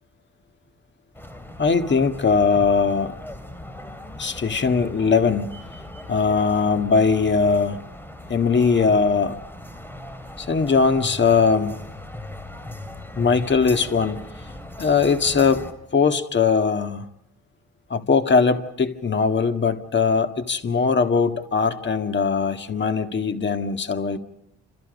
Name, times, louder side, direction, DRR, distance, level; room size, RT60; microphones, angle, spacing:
sound 1, 1.1-15.7, left 1 dB, 5° left, 3.1 m, -39 dB
voice 1, 1.6-3.2 4.2-5.5 6.1-7.8 8.3-9.4 10.4-11.8 13.2-14.3 14.8-15.7 15.9-17.1 17.9-24.2, left 5 dB, 40° left, 1.9 m, -20 dB
29.0 x 27.5 x 5.3 m
cardioid pair, 125°, 29 cm